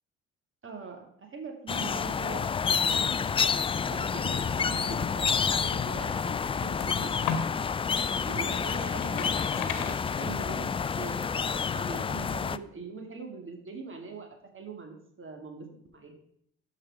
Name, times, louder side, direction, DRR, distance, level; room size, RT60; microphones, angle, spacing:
voice 1, 0.6-3.1 3.9-6.4 6.6-7.1 7.9-11.5 11.7-14.3 14.5-15.7 15.9-16.2, right 4 dB, 35° right, 4 dB, 2.5 m, -42 dB
sound 1, 1.7-12.6, left 6 dB, 15° left, 0.3 m, -29 dB
sound 2, 5.5-7.6 8.1-10.6, left 7 dB, 60° left, 1.3 m, -37 dB
13.5 x 5.1 x 4.7 m, 0.69 s
hypercardioid pair, 50°, 34 cm